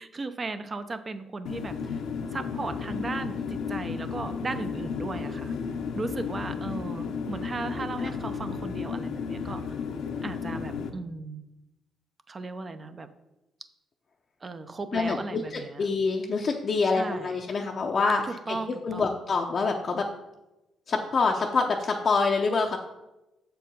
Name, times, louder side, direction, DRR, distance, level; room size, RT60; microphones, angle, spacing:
voice 1, 0.0-2.0 2.3-5.5 5.9-9.8 10.2-11.4 12.3-13.1 14.4-15.9 16.8-17.4 18.2-19.2, right 3 dB, 30° right, 10 dB, 0.6 m, -36 dB
sound 1, 1.5-10.9, left 6 dB, 80° left, 0.7 m, -33 dB
voice 2, 7.7-8.1 14.9-18.6 18.8-20.1 20.9-22.8, left 4 dB, 40° left, 0 dB, 0.6 m, -26 dB
7.3 x 4.6 x 5.3 m, 0.98 s
cardioid pair, 115°, 0 cm